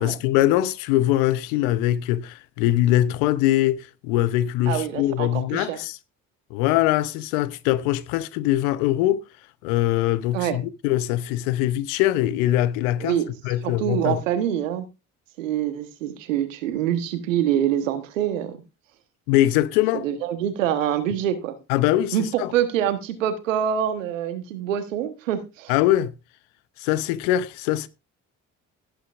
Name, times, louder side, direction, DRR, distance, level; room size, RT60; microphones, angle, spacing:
voice 1, 0.0-6.0 6.5-9.2 9.6-13.2 13.4-14.2 19.3-20.1 21.7-22.5 25.7-26.1 26.8-27.9, left 14 dB, 80° left, 0.8 m, -22 dB
voice 2, 4.7-5.8 10.3-10.6 13.0-13.3 13.6-14.8 15.4-18.6 19.9-21.5 22.1-25.7, right 10 dB, 90° right, 1.3 m, -25 dB
17.0 x 8.2 x 2.5 m
hypercardioid pair, 45°, 37 cm